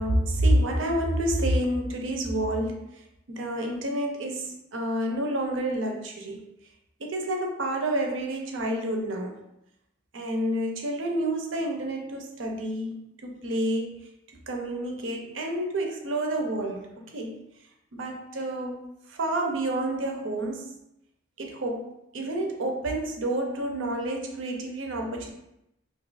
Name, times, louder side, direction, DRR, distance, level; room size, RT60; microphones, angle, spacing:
voice 1, 0.0-2.9 3.3-6.4 7.0-9.4 10.1-13.9 14.3-17.4 17.9-20.7 21.4-25.3, right 1 dB, 75° right, 2 dB, 0.6 m, -29 dB
2.6 x 2.4 x 3.9 m, 0.84 s
head